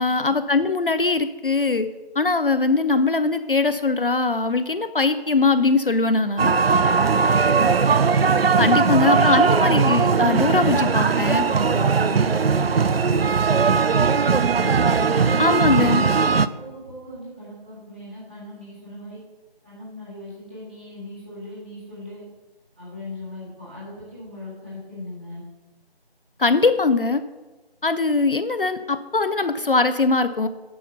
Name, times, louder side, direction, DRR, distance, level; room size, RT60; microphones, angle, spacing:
voice 1, 0.0-1.9 2.2-6.5 8.6-11.4 15.4-16.0 26.4-27.2 27.8-30.5, left 3 dB, 60° left, 11 dB, 0.5 m, -21 dB
sound 1, 6.4-16.5, right 5 dB, 70° right, 0.5 m, -19 dB
voice 2, 7.4-8.0 8.8-9.7 11.0-16.0 16.5-19.2 19.6-22.2 22.8-25.4, left 2 dB, 10° right, -11 dB, 1.7 m, -39 dB
8.5 x 5.5 x 5.5 m, 1.2 s
figure-of-eight pair, 170°, 31 cm